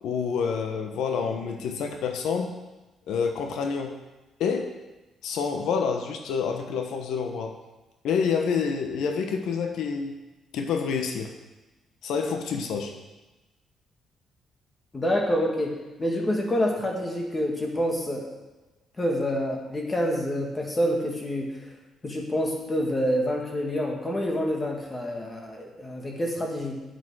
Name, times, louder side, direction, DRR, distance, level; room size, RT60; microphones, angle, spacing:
voice 1, 0.0-2.5 3.1-3.9 4.4-4.7 5.2-7.5 8.0-10.1 10.5-11.3 12.0-12.9, left 6 dB, 80° left, 4 dB, 1.2 m, -28 dB
voice 2, 14.9-18.3 19.0-21.7 22.0-26.8, equal, 25° left, 0 dB, 2.2 m, -27 dB
8.3 x 7.9 x 6.4 m, 1.1 s
cardioid pair, 90°, 0 cm